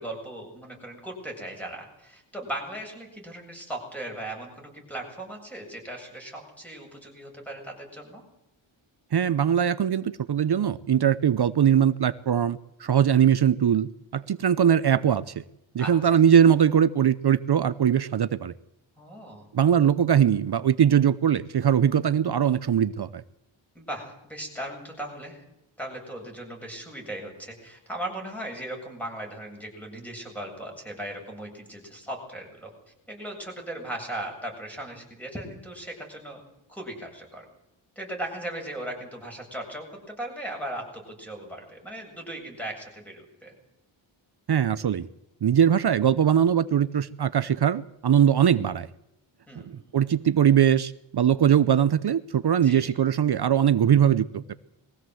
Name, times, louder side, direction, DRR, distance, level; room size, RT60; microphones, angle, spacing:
voice 1, 0.0-8.2 15.8-16.2 19.0-19.5 23.7-25.4 25.8-32.7 33.1-36.4 36.7-37.5 38.0-43.5 49.5-49.8 52.6-52.9, right 1 dB, 5° left, 1 dB, 7.7 m, -38 dB
voice 2, 9.1-15.3 15.7-18.5 19.5-23.2 44.5-45.1 45.4-48.9 49.6-49.7 49.9-54.5, right 9 dB, 50° right, 14 dB, 0.8 m, -21 dB
22.5 x 15.5 x 7.8 m, 0.86 s
wide cardioid pair, 125°, 49 cm